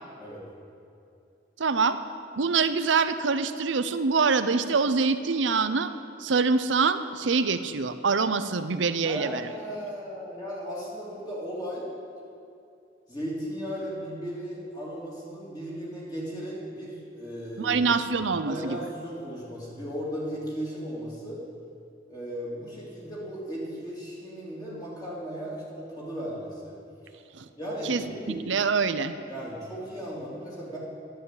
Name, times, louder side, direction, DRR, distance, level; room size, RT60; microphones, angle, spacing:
voice 1, 1.6-2.0 2.4-5.9 6.2-9.4 17.6-18.8 27.4-27.5 27.8-28.0 28.3-29.1, right 4 dB, 90° right, 11 dB, 0.7 m, -25 dB
voice 2, 9.0-11.9 13.1-17.8 18.4-21.4 22.1-26.8 27.0-27.1 27.5-28.4 29.3-30.8, equal, 20° left, -6 dB, 3.3 m, -36 dB
11.0 x 10.5 x 8.5 m, 2.5 s
head